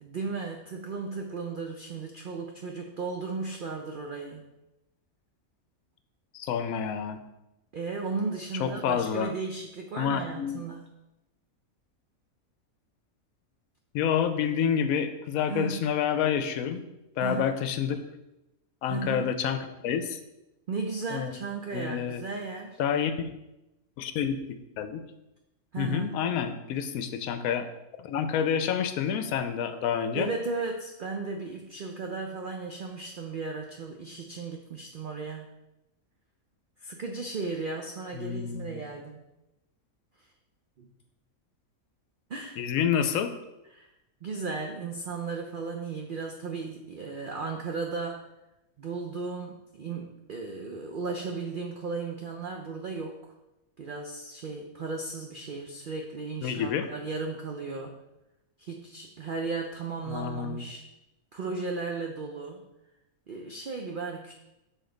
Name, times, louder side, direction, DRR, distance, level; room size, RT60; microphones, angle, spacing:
voice 1, 0.0-4.4 7.7-10.8 15.5-15.8 17.2-17.6 18.9-19.3 20.7-22.8 25.7-26.2 30.1-35.5 36.8-39.2 40.2-40.3 40.8-40.9 42.3-42.6 43.7-43.9 44.2-48.3 48.8-53.3 53.8-58.0 58.6-60.8 61.3-62.6 63.3-64.3, right 4 dB, 60° right, 2 dB, 0.5 m, -35 dB
voice 2, 6.3-7.2 8.6-9.3 10.0-10.6 13.9-16.8 17.2-18.0 18.8-20.2 21.1-21.3 21.7-22.2 22.8-23.1 24.0-25.0 25.8-27.7 28.0-30.3 38.2-38.9 42.6-43.3 56.4-56.9 60.1-60.6, left 8 dB, 75° left, 9 dB, 1.0 m, -28 dB
6.8 x 4.3 x 3.9 m, 0.93 s
omnidirectional pair, 1.5 m